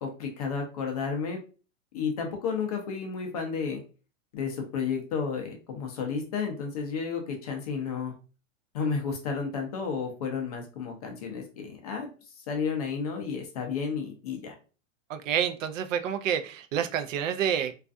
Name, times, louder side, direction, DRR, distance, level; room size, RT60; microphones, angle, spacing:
voice 1, 0.0-1.4 1.9-3.8 4.3-8.1 8.7-12.1 12.4-14.5, left 5 dB, 30° left, 0.4 m, -32 dB
voice 2, 15.1-17.8, right 8 dB, 75° right, 0.5 m, -28 dB
2.4 x 2.2 x 2.5 m
supercardioid pair, 160°, 39 cm